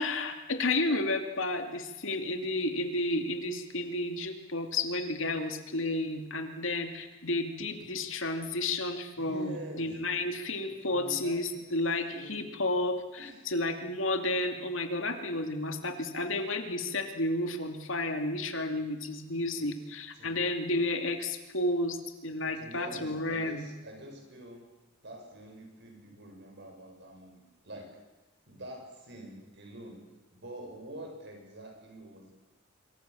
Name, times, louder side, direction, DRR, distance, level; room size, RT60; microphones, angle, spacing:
voice 1, 0.0-23.7, left 2 dB, 70° left, 6 dB, 2.7 m, -32 dB
voice 2, 9.2-9.9 10.6-11.8 12.1-12.4 13.2-13.4 19.6-19.7 20.2-20.4 22.3-24.6 25.0-27.9 28.5-30.0 30.3-32.3, right 1 dB, 60° right, 2 dB, 7.4 m, -46 dB
26.0 x 24.0 x 7.1 m, 1.1 s
head